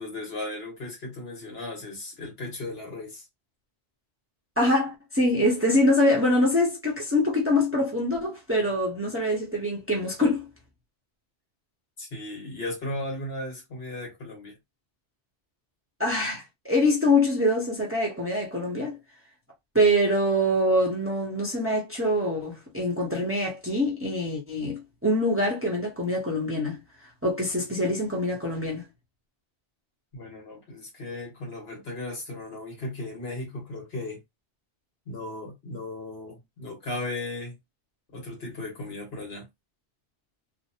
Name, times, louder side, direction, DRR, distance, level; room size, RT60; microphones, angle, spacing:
voice 1, 0.0-3.2 12.0-14.6 30.1-34.2 35.1-37.6 38.1-39.5, left 2 dB, 70° left, 1.6 m, -36 dB
voice 2, 4.6-10.5 16.0-19.0 19.7-26.8 27.2-28.8, left 1 dB, 15° right, 0.8 m, -24 dB
3.2 x 2.1 x 2.8 m
omnidirectional pair, 1.1 m